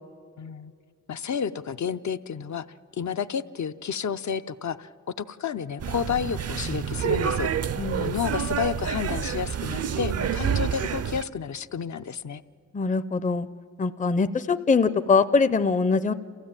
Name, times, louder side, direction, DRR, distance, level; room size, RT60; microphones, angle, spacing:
voice 1, 0.4-0.7 1.1-2.6 3.0-4.9 5.2-7.5 8.0-12.4, left 7 dB, 70° left, 11 dB, 0.6 m, -31 dB
sound 1, 5.8-11.2, right 7 dB, 55° right, 0.5 m, -28 dB
voice 2, 7.8-8.1 12.7-13.5 13.8-16.1, left 4 dB, 25° left, 12 dB, 0.5 m, -23 dB
28.0 x 15.5 x 8.8 m, 2.3 s
wide cardioid pair, 105°, 30 cm